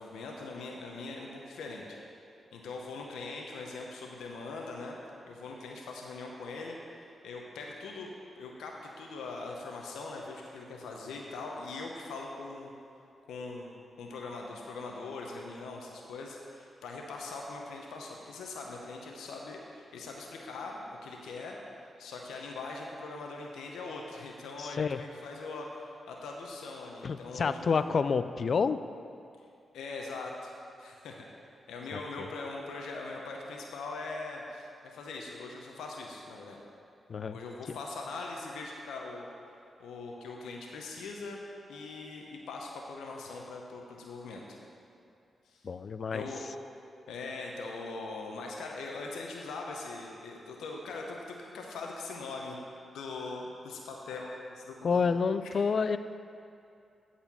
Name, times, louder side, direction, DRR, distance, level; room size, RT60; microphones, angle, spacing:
voice 1, 0.0-1.9 2.5-5.0 5.3-8.1 8.4-12.7 13.3-21.6 22.0-27.9 29.7-30.5 30.8-31.3 31.7-36.6 37.3-39.3 39.8-41.4 41.7-44.4 45.4-45.7 46.1-46.4 47.1-52.6 52.9-55.1, left 3 dB, 90° left, 0 dB, 0.8 m, -41 dB
voice 2, 24.6-25.0 27.0-28.8 31.9-32.3 37.1-37.4 37.7-37.8 45.6-46.3 54.8-56.0, left 5 dB, 60° left, 12 dB, 0.3 m, -29 dB
8.7 x 4.2 x 7.0 m, 2.5 s
cardioid pair, 55°, 0 cm